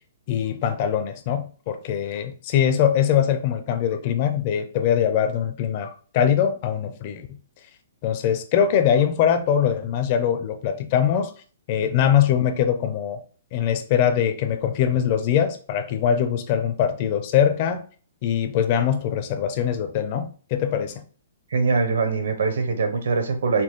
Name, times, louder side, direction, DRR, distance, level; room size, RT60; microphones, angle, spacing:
voice 1, 0.3-7.3 8.0-11.3 11.7-13.2 13.5-17.8 18.2-20.9, left 9 dB, 30° left, 0.5 m, -22 dB
voice 2, 21.5-23.6, right 4 dB, 75° right, 1.1 m, -22 dB
4.3 x 2.8 x 3.6 m
hypercardioid pair, 170°, 0 cm